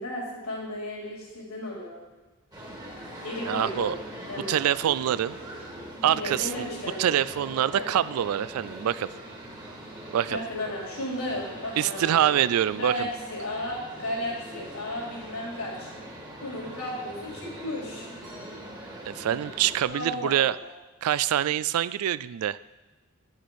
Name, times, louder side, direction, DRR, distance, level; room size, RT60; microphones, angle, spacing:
voice 1, 0.0-2.0 3.2-4.0 4.3-4.6 6.2-7.1 7.7-7.9 10.3-12.3 12.8-15.9 16.4-18.1 19.9-20.7, left 1 dB, 85° left, -3 dB, 3.4 m, -34 dB
sound 1, 2.5-19.8, right 1 dB, 20° right, 1.6 m, -42 dB
voice 2, 3.4-4.0 4.5-5.4 6.0-6.6 7.0-9.1 10.1-10.4 11.8-13.1 19.1-20.6 21.0-22.6, right 11 dB, 85° right, 18 dB, 0.3 m, -25 dB
10.0 x 6.5 x 4.7 m, 1.2 s
head